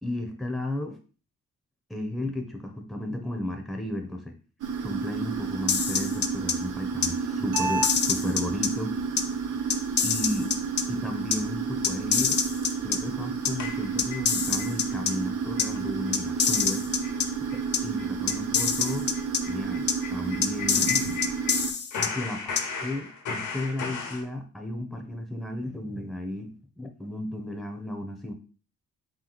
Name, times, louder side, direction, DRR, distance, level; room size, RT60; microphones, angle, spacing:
voice 1, 0.0-1.0 1.9-4.3 4.8-9.0 10.0-10.5 10.9-12.4 12.8-16.9 17.8-19.1 19.5-21.0 22.0-22.5 22.8-26.5 26.8-28.3, left 1 dB, ahead, 3 dB, 0.7 m, -33 dB
sound 1, 4.6-21.7, right 5 dB, 80° right, 0.8 m, -31 dB
sound 2, 5.7-6.5 7.0-7.1 7.6-8.7 9.2-9.3 9.7-10.8 11.3-11.4 11.8-13.0 13.4-13.5 14.0-15.1 15.6-15.7 16.1-17.3 17.7-17.8 18.3-19.4 19.9-20.0 20.4-22.1 22.6-22.7, left 7 dB, 35° left, 0.5 m, -25 dB
sound 3, 13.6-14.7 15.1-15.2 15.6-15.8 16.1-16.2 16.5-16.7 17.0-17.2 17.5-17.6 18.0-21.6 21.9-24.2, left 4 dB, 70° left, 1.0 m, -36 dB
3.7 x 3.1 x 3.9 m, 0.37 s
cardioid pair, 120°, 30 cm